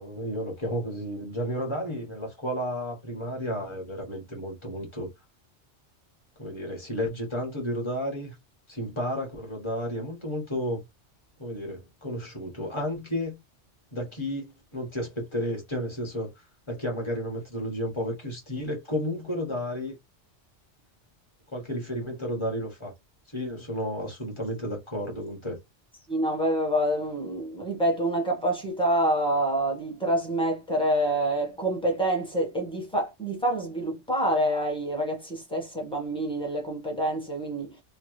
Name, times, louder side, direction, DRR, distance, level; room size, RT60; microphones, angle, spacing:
voice 1, 0.0-5.1 6.4-8.3 8.7-10.8 11.4-13.4 13.9-16.3 16.7-19.9 21.5-22.9 23.3-25.6, equal, 25° left, 1.4 m, -32 dB
voice 2, 26.1-37.7, right 1 dB, 5° left, 1.1 m, -27 dB
3.0 x 2.3 x 3.1 m
omnidirectional pair, 1.2 m